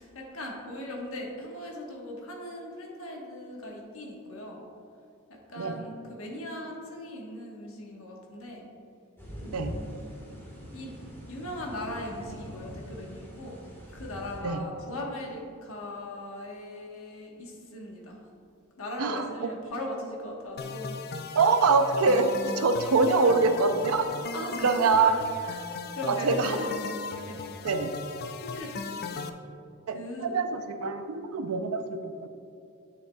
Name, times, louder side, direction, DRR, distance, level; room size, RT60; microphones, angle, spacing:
voice 1, 0.0-4.6 5.3-8.7 9.4-10.1 10.7-10.9 11.3-13.6 13.9-18.2 18.8-21.0 24.3-25.2 25.4-25.6 25.9-26.8 27.2-27.4 28.4-29.3 29.9-30.4, left 1 dB, 70° left, -1 dB, 1.3 m, -39 dB
sound 1, 9.2-14.4, equal, 10° left, 1.5 m, -43 dB
voice 2, 19.0-19.5 21.4-24.1 24.6-25.2 26.1-26.6 27.6-27.9 29.9-30.0 30.2-32.3, right 4 dB, 75° right, 8 dB, 0.5 m, -24 dB
sound 2, 20.6-29.3, left 4 dB, 45° left, 0.4 m, -37 dB
9.1 x 7.3 x 2.3 m, 2.5 s
head